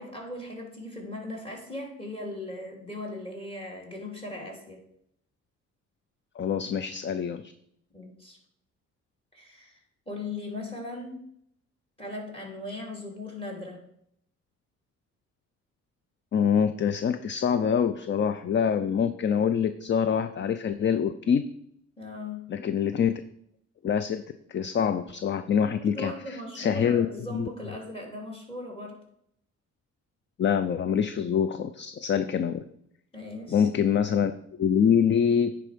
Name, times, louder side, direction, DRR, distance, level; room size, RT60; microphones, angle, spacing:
voice 1, 0.0-4.8 7.9-8.4 9.3-11.2 12.0-13.8 22.0-22.5 25.6-29.0 33.1-33.7, left 2 dB, 20° left, 1 dB, 3.0 m, -38 dB
voice 2, 6.4-7.5 16.3-21.4 22.5-23.2 23.8-24.2 24.5-27.1 27.3-27.5 30.4-32.6 33.5-34.3 34.6-35.5, left 7 dB, 40° left, 11 dB, 0.5 m, -25 dB
9.8 x 4.7 x 5.1 m, 0.72 s
cardioid pair, 90°, 30 cm